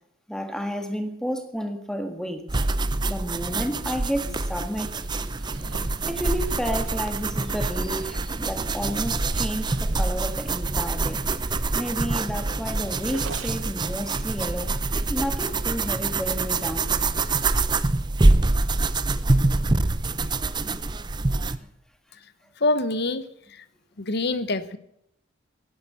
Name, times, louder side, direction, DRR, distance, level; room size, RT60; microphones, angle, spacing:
voice 1, 0.3-2.4 3.1-5.0 5.5-5.7 6.1-11.2 11.7-14.7 15.1-16.9, equal, 5° left, 6 dB, 1.7 m, -31 dB
sound 1, 2.5-21.6, right 3 dB, 20° right, 0.6 m, -25 dB
sound 2, 4.3-11.1, left 2 dB, 80° left, 3.7 m, -56 dB
Zipper (clothing), 5.1-13.8, right 4 dB, 80° right, 1.1 m, -45 dB
voice 2, 22.6-23.2 23.5-23.6 24.0-24.8, left 2 dB, 55° left, 13 dB, 1.0 m, -25 dB
17.0 x 11.5 x 6.9 m, 0.77 s
head